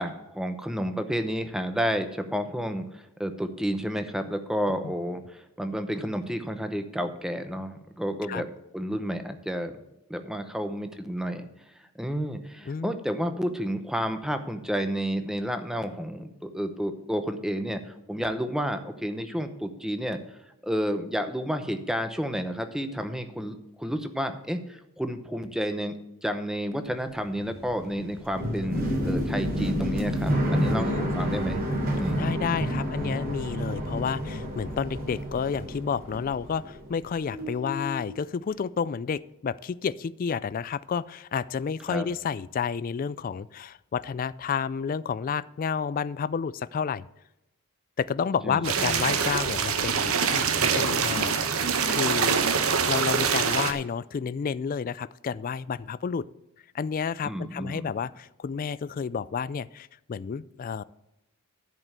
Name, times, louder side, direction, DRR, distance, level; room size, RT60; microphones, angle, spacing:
voice 1, 0.0-9.8 10.1-11.5 11.9-20.2 20.6-25.9 26.2-31.6 32.0-32.6 41.9-42.1 48.4-49.0 57.2-57.9, equal, 5° right, 8 dB, 0.8 m, -31 dB
sound 1, 26.9-37.0 37.3-38.1, equal, 45° right, 3.0 m, -30 dB
voice 2, 30.8-31.2 32.2-47.0 48.0-52.4 52.9-56.3 56.7-60.8, left 6 dB, 40° left, 18 dB, 0.3 m, -30 dB
sound 2, 48.6-53.7, right 6 dB, 85° right, 1.0 m, -25 dB
11.0 x 5.2 x 8.1 m, 0.88 s
head